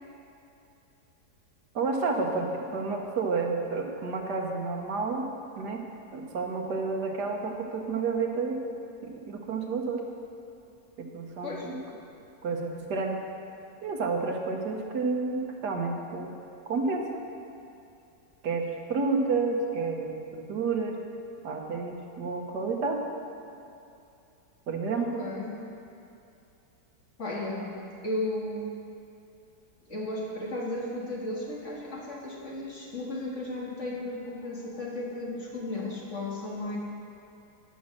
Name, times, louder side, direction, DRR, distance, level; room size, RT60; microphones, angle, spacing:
voice 1, 1.7-5.3 5.6-5.8 6.1-8.6 9.0-10.0 11.0-11.8 12.4-13.2 13.8-16.3 16.7-17.2 18.4-21.0 21.4-23.0 24.7-25.2, right 4 dB, 75° right, 2 dB, 1.6 m, -30 dB
voice 2, 25.0-25.6 27.2-27.8 28.0-28.7 29.9-36.8, left 1 dB, 45° left, -3 dB, 1.9 m, -34 dB
11.5 x 6.2 x 7.4 m, 2.7 s
omnidirectional pair, 1.8 m